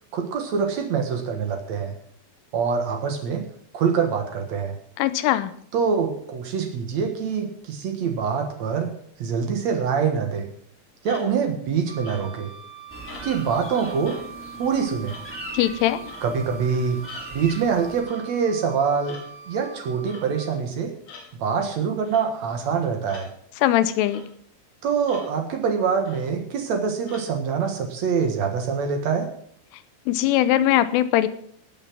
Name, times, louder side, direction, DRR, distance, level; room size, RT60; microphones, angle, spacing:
voice 1, 0.1-1.9 2.5-3.4 3.7-4.7 5.7-8.9 9.2-10.5 11.0-12.5 13.2-14.2 14.6-15.1 16.2-17.0 17.3-20.9 21.4-23.3 24.8-29.3, right 6 dB, 75° right, 4 dB, 1.6 m, -25 dB
voice 2, 5.0-5.5 15.5-16.0 23.6-24.2 30.1-31.3, left 13 dB, 85° left, 13 dB, 3.2 m, -20 dB
sound 1, 11.0-11.5 12.0-12.5 13.0-13.4 14.1-14.3 15.1-15.3 16.1-16.3 17.1-17.3 18.1-18.3 19.1-19.3 20.1-20.3 21.1-21.3 22.1-22.3 23.1-23.3 24.1-24.3 25.1-25.3 26.1-26.3 27.1-27.3, left 5 dB, 60° left, 4.8 m, -44 dB
Wind instrument woodwind instrument, 11.9-20.5, right 6 dB, 25° left, 3.2 m, -42 dB
sound 2, 12.9-18.0, equal, 5° left, 1.9 m, -40 dB
19.5 x 6.9 x 6.2 m, 0.63 s
omnidirectional pair, 5.7 m